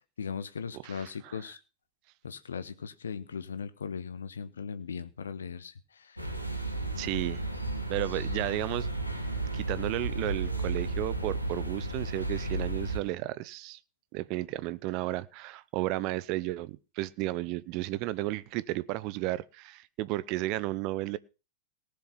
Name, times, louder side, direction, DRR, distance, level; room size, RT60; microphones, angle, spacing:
voice 1, 0.2-1.6 2.2-6.2, left 6 dB, 70° left, 1.1 m, -38 dB
voice 2, 0.8-1.4 7.0-7.4 7.9-8.9 9.5-13.8 14.1-21.2, right 17 dB, 45° right, 0.6 m, -33 dB
sound 1, 6.2-13.0, right 2 dB, 90° left, 1.8 m, -33 dB
18.5 x 6.7 x 5.7 m
figure-of-eight pair, 90°, 0 cm